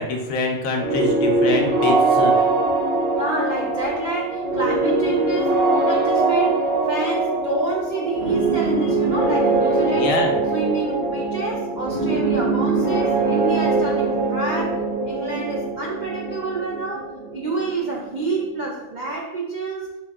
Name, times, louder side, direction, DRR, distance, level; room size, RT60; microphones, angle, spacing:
voice 1, 0.0-2.5 9.9-10.4, left 3 dB, 75° left, 2 dB, 1.0 m, -25 dB
sound 1, 0.7-18.4, right 3 dB, 50° right, 1.2 m, -22 dB
voice 2, 3.1-10.2 10.5-19.9, right 3 dB, 75° right, -3 dB, 0.4 m, -28 dB
3.7 x 3.6 x 2.3 m, 0.96 s
omnidirectional pair, 1.5 m